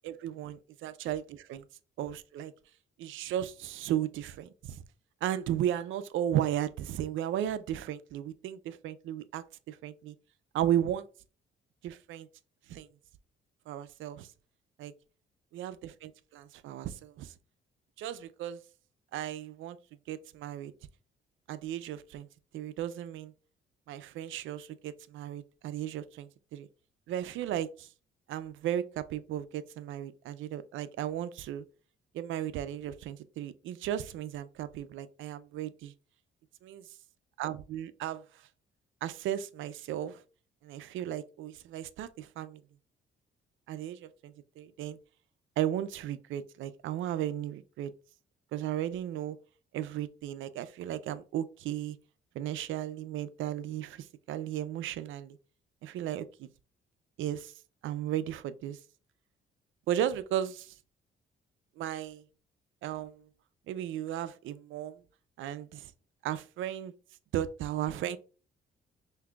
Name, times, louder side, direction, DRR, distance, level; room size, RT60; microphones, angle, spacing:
voice 1, 0.0-0.6 0.8-1.6 2.0-2.5 3.0-4.8 5.2-10.1 10.5-11.1 11.8-12.3 12.7-12.9 13.7-14.3 14.8-14.9 15.5-17.3 18.0-18.6 19.1-19.8 20.1-20.7 21.5-22.3 22.5-23.3 23.9-26.7 27.1-27.9 28.3-31.6 32.1-35.9 36.6-36.8 37.4-38.2 39.0-40.2 40.6-42.6 43.7-45.0 45.6-47.9 48.5-49.4 49.7-52.0 52.3-55.4 55.8-56.5 57.2-57.5 57.8-58.8 59.9-60.7 61.8-62.2 62.8-63.3 63.7-65.0 65.4-65.9 66.2-66.9 67.3-68.2, right 11 dB, 80° right, 0.4 m, -35 dB
5.8 x 2.6 x 2.3 m
cardioid pair, 90°, 20 cm